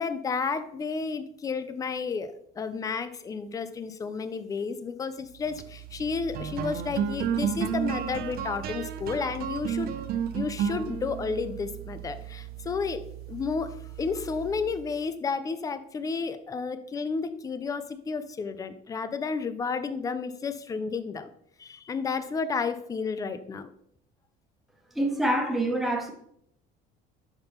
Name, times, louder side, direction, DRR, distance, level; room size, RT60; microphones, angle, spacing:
voice 1, 0.0-9.9 10.3-13.0 13.3-21.3 21.6-23.7, left 5 dB, 15° left, 11 dB, 0.4 m, -32 dB
sound 1, 5.4-15.0, right 8 dB, 50° right, 0.5 m, -33 dB
voice 2, 24.9-26.1, right 1 dB, ahead, 2 dB, 0.8 m, -26 dB
5.9 x 5.5 x 3.5 m, 0.71 s
cardioid pair, 160°, 20 cm